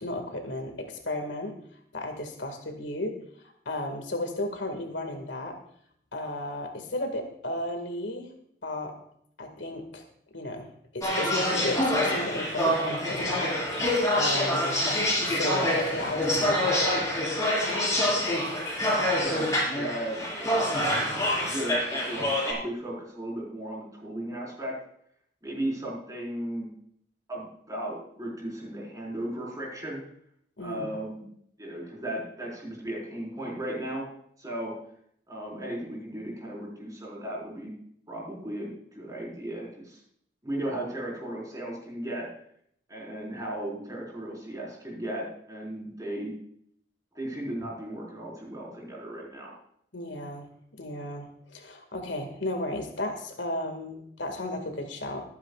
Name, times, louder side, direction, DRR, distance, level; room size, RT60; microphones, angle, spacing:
voice 1, 0.0-1.5 1.9-3.2 3.7-5.6 6.1-8.3 8.6-8.9 9.4-10.0 10.3-13.5 14.2-14.9 15.3-17.1 30.6-30.9 49.9-50.5 50.8-55.2, left 1 dB, 90° left, 4 dB, 2.1 m, -34 dB
sound 1, 11.0-22.5, left 1 dB, 20° left, 5.3 m, -26 dB
voice 2, 18.9-19.5 19.7-20.6 21.3-24.7 25.4-26.7 27.3-30.0 30.6-31.3 31.6-34.1 34.4-34.7 35.3-37.7 38.1-40.0 40.4-42.3 42.9-46.3 47.1-49.5, right 1 dB, 20° right, -4 dB, 4.8 m, -36 dB
23.5 x 9.7 x 2.5 m, 0.67 s
head